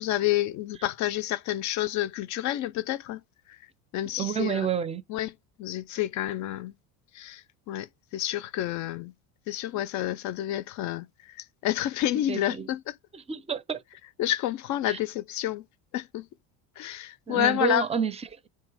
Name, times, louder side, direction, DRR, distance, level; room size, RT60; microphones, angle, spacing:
voice 1, 0.0-3.2 3.9-4.7 5.1-5.3 5.6-6.7 7.1-9.1 9.5-13.0 14.2-15.6 15.9-16.3 16.8-17.8, left 13 dB, 50° left, 0.5 m, -29 dB
voice 2, 4.2-5.0 12.3-12.7 13.1-13.8 14.9-15.0 17.3-18.5, right 7 dB, 15° right, 0.5 m, -29 dB
7.2 x 2.9 x 4.7 m
supercardioid pair, 120°, 39 cm